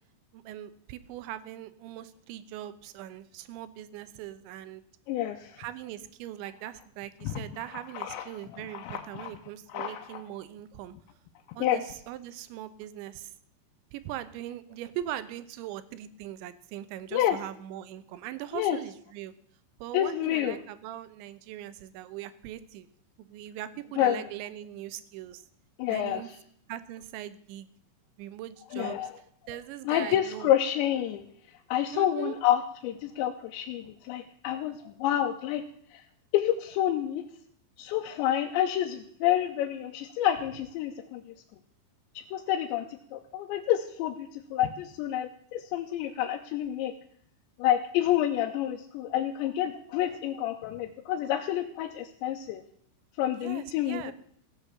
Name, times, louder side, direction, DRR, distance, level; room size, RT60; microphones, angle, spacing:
voice 1, 0.3-4.8 5.6-10.9 11.6-13.3 13.9-19.3 19.8-22.9 23.3-25.4 25.9-26.3 26.7-27.7 28.2-29.0 29.5-30.5 31.9-32.4 53.3-54.1, right 12 dB, 90° right, 14 dB, 3.2 m, -40 dB
voice 2, 5.1-5.5 7.2-7.4 7.9-8.2 8.7-9.3 9.7-10.2 11.6-11.8 17.1-17.4 18.5-18.8 19.9-20.6 24.0-24.2 25.8-26.2 28.7-29.1 29.9-31.2 31.7-35.6 35.9-36.0 36.3-37.2 37.8-41.2 42.3-42.8 43.1-46.9 47.6-52.6 53.2-54.1, left 11 dB, 90° left, 3 dB, 3.1 m, -28 dB
16.0 x 8.2 x 7.2 m, 0.63 s
omnidirectional pair, 5.1 m